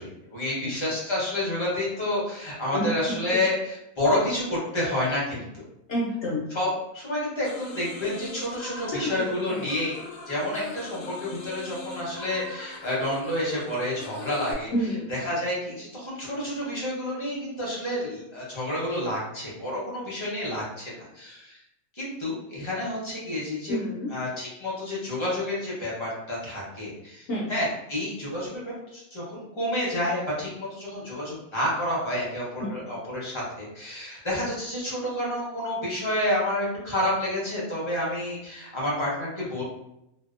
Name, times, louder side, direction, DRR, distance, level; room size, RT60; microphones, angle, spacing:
voice 1, 0.0-5.6 6.5-10.0 10.3-14.7 15.1-21.6 21.9-23.8 24.1-39.6, left 1 dB, 35° left, -6 dB, 0.5 m, -29 dB
voice 2, 5.9-6.5 8.9-9.7 14.7-15.1 23.7-24.1 27.3-27.5 32.6-32.7, equal, 65° left, -4 dB, 0.7 m, -29 dB
sound 1, 7.4-14.5, left 3 dB, 85° left, 1.1 m, -41 dB
2.7 x 2.0 x 2.4 m, 0.84 s
omnidirectional pair, 1.6 m